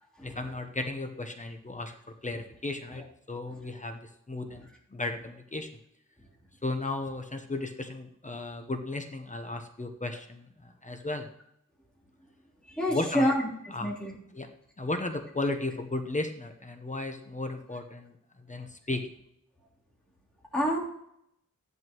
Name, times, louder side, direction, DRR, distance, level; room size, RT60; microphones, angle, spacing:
voice 1, 0.2-1.9 2.2-5.7 6.6-11.3 12.9-13.3 13.7-13.9 14.3-14.5 14.8-18.2 18.5-19.0, left 2 dB, 25° left, 5 dB, 0.9 m, -35 dB
voice 2, 12.7-13.5 13.8-14.1 20.5-20.8, equal, 5° left, -7 dB, 3.4 m, -27 dB
14.5 x 11.0 x 3.1 m, 0.75 s
wide cardioid pair, 145°, 31 cm